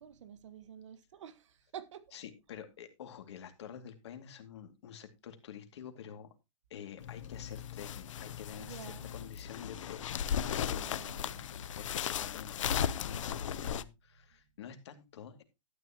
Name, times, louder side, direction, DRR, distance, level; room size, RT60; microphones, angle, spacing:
voice 1, 0.0-2.1 8.6-9.2 10.7-11.5, right 9 dB, 70° right, 1.4 m, -49 dB
voice 2, 2.1-6.3 6.7-10.7 11.8-15.4, left 8 dB, 60° left, 2.4 m, -48 dB
sound 1, 7.0-13.8, left 9 dB, 75° left, 0.8 m, -36 dB
12.5 x 9.6 x 2.9 m
supercardioid pair, 180°, 16 cm